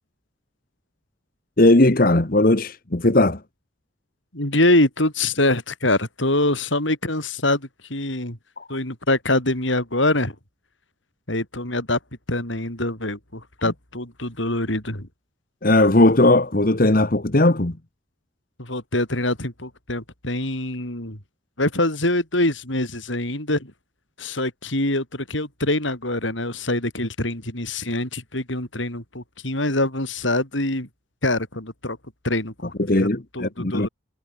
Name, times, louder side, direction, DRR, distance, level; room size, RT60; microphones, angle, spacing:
voice 1, 1.6-3.4 8.6-8.7 15.6-17.8 32.8-33.9, left 2 dB, 50° left, 1.4 m, -18 dB
voice 2, 4.3-8.4 8.7-10.4 11.3-12.0 12.3-15.1 18.6-21.2 21.6-23.7 24.2-30.9 31.2-32.0 32.2-32.7 33.0-33.1 33.3-33.9, left 1 dB, 80° left, 7.7 m, -24 dB
head